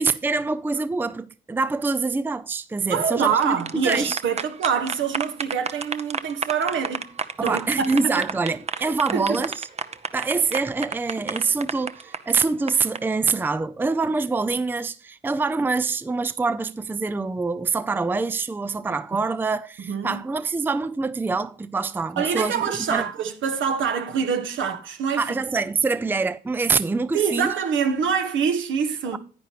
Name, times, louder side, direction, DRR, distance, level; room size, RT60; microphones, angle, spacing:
voice 1, 0.0-4.2 7.4-9.6 10.1-23.0 25.2-27.5 29.1-29.2, right 4 dB, 10° right, 0.5 m, -25 dB
voice 2, 2.9-7.1 7.4-8.3 8.8-9.4 19.9-20.2 22.2-25.2 27.1-29.2, right 6 dB, 75° right, 1.6 m, -25 dB
sound 1, 3.3-13.0, right 5 dB, 30° right, 0.8 m, -31 dB
10.5 x 9.3 x 3.1 m
cardioid pair, 90°, 20 cm